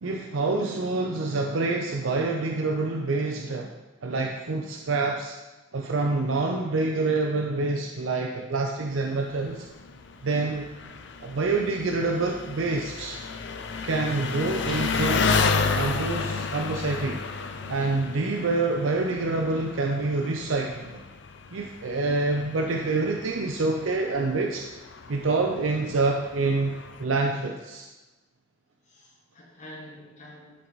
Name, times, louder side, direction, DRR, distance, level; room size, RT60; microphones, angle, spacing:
voice 1, 0.0-3.7 4.0-5.4 5.7-9.6 10.2-10.7 11.2-13.2 13.8-15.3 15.7-17.2 17.7-21.0 21.5-24.6 25.1-26.7 27.0-27.9, right 3 dB, 85° right, 2 dB, 0.6 m, -27 dB
Engine, 8.9-27.0, left 4 dB, 65° left, 0.5 m, -32 dB
sound 1, 14.6-16.2, right 1 dB, 25° right, 1.6 m, -44 dB
voice 2, 28.9-30.7, left 1 dB, 35° left, -2 dB, 1.3 m, -47 dB
11.0 x 4.6 x 4.0 m, 1.1 s
head